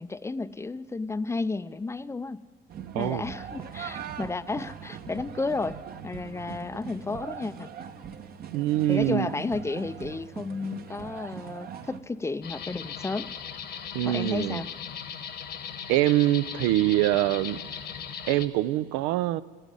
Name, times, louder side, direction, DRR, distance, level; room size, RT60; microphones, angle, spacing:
voice 1, 0.0-2.4 2.9-5.8 6.0-7.7 8.9-13.3 14.0-14.7, left 3 dB, 15° left, 15 dB, 0.4 m, -32 dB
sound 1, 2.7-12.0, right 8 dB, 50° right, 1.0 m, -41 dB
voice 2, 8.5-9.3 13.9-14.6 15.9-17.6 18.3-19.4, right 15 dB, 85° right, 17 dB, 0.5 m, -24 dB
sound 2, 12.4-18.5, left 7 dB, 55° left, 1.1 m, -38 dB
14.0 x 9.1 x 9.8 m, 1.5 s
supercardioid pair, 85°, 20 cm